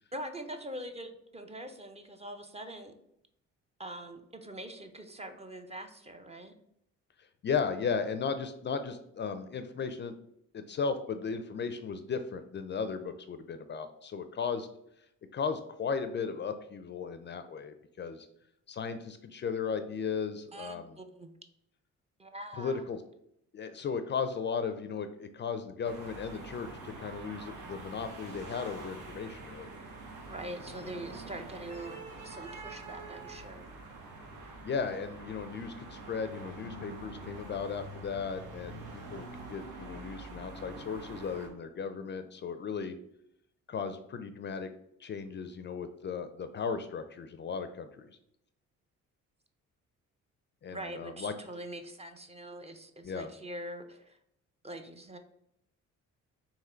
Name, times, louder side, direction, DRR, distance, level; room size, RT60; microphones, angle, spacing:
voice 1, 0.1-2.9 3.8-6.5 20.5-21.3 22.2-22.8 30.3-33.7 50.7-54.2 54.6-55.2, right 1 dB, 20° right, 7 dB, 0.5 m, -43 dB
voice 2, 7.4-10.1 10.5-14.7 15.3-18.3 18.7-21.0 22.6-23.0 23.5-29.7 34.6-43.0 43.7-44.7 45.0-48.1 50.6-51.3 53.0-53.3, left 5 dB, 40° left, 10 dB, 0.4 m, -36 dB
sound 1, 25.8-41.5, right 2 dB, 80° right, 1.1 m, -45 dB
3.7 x 2.9 x 4.3 m, 0.77 s
cardioid pair, 90°, 30 cm